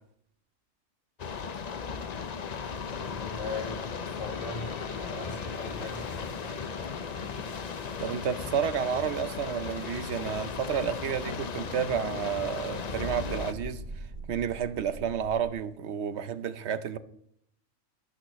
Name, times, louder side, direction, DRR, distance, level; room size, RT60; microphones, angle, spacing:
sound 1, 1.2-13.5, left 6 dB, 45° left, 0.6 m, -36 dB
voice 1, 2.8-4.7 5.0-6.8, left 2 dB, 70° left, 5.5 m, -40 dB
sound 2, 3.9-12.5 12.7-15.5, right 1 dB, 85° right, 5.4 m, -46 dB
voice 2, 8.0-17.0, right 8 dB, 60° right, 1.0 m, -31 dB
24.5 x 8.8 x 3.1 m
omnidirectional pair, 1.3 m